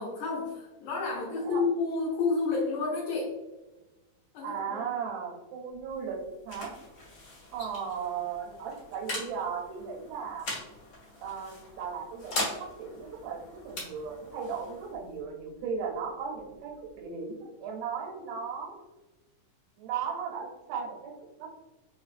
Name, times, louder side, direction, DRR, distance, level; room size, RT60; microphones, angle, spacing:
voice 1, 0.0-3.4 4.3-4.9, left 4 dB, 75° left, -4 dB, 1.9 m, -30 dB
voice 2, 4.4-6.7 7.5-10.5 11.2-18.8 19.8-21.1 21.4-21.5, right 6 dB, 85° right, 0 dB, 2.4 m, -36 dB
sound 1, 5.7-17.1, left 2 dB, 50° left, 1.8 m, -41 dB
5.1 x 2.3 x 2.4 m, 1.1 s
omnidirectional pair, 3.8 m